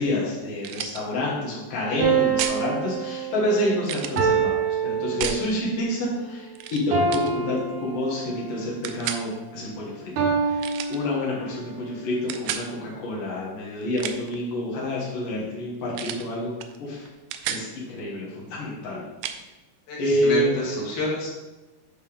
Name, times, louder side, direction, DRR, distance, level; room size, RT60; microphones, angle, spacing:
voice 1, 0.0-10.1 10.4-16.5 16.8-17.1 17.5-19.0 19.3-19.4 20.0-20.5, left 1 dB, 85° left, -5 dB, 3.2 m, -28 dB
sound 1, 0.6-1.0 2.4-2.6 3.8-4.2 5.2-5.4 6.6-6.8 7.1-7.3 8.8-9.2 10.6-11.0 12.3-12.7 13.8-14.4 16.0-16.3 16.6-16.8 17.1-17.7 19.2-19.4, right 10 dB, 80° right, 2.0 m, -31 dB
sound 2, 2.0-5.7 6.9-8.5 10.2-11.7, right 5 dB, 65° right, 2.2 m, -26 dB
voice 2, 19.9-21.3, left 2 dB, 65° left, -5 dB, 3.2 m, -28 dB
9.7 x 4.9 x 3.6 m, 1.1 s
omnidirectional pair, 3.7 m